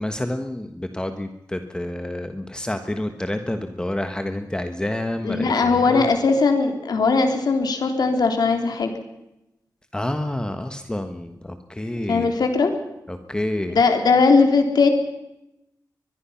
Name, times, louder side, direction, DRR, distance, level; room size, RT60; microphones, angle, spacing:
voice 1, 0.0-6.0 9.9-12.4 13.1-13.8, left 1 dB, 10° left, 7 dB, 1.3 m, -28 dB
voice 2, 5.2-8.9 12.1-12.7 13.7-14.9, left 4 dB, 75° left, 5 dB, 3.5 m, -19 dB
23.0 x 22.5 x 5.8 m, 0.90 s
wide cardioid pair, 135°, 7 cm